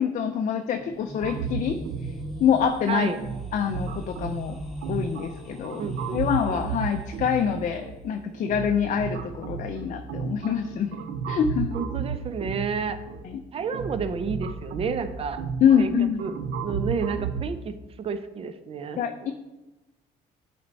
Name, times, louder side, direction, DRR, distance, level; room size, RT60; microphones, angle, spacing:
voice 1, 0.0-1.8 2.4-3.1 3.5-4.6 4.9-5.8 6.1-11.0 11.3-11.7 13.2-13.4 15.6-16.2 19.0-19.3, left 7 dB, 50° left, 6 dB, 0.5 m, -25 dB
sound 1, 0.7-7.6, equal, ahead, 1.3 m, -42 dB
sound 2, 1.2-17.4, right 5 dB, 80° right, 0.6 m, -34 dB
voice 2, 2.9-3.2 5.8-6.2 11.7-13.0 13.5-15.4 15.8-15.9 16.2-16.3 16.6-19.0, right 5 dB, 35° right, 11 dB, 0.5 m, -30 dB
8.7 x 4.3 x 4.0 m, 1.1 s
cardioid pair, 110°, 17 cm